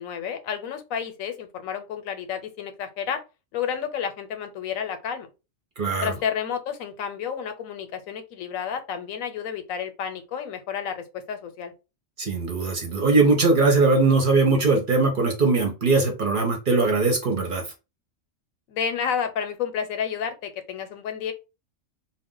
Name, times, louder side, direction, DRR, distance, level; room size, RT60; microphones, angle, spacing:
voice 1, 0.0-3.2 3.5-5.3 6.0-11.7 18.7-21.3, left 7 dB, 90° left, 1.1 m, -31 dB
voice 2, 5.8-6.1 12.2-17.7, right 3 dB, 45° right, 0.8 m, -20 dB
2.4 x 2.1 x 3.7 m
omnidirectional pair, 1.4 m